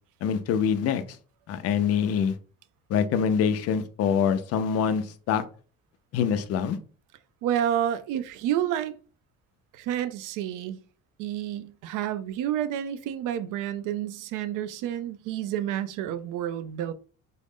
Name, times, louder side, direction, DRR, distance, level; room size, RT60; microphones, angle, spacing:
voice 1, 0.2-1.0 1.5-2.4 2.9-5.4 6.1-6.8, left 7 dB, 50° left, 0.4 m, -25 dB
voice 2, 7.4-9.0 9.7-10.8 11.2-16.9, right 10 dB, 80° right, 0.5 m, -29 dB
3.8 x 2.0 x 3.5 m
cardioid pair, 165°, 31 cm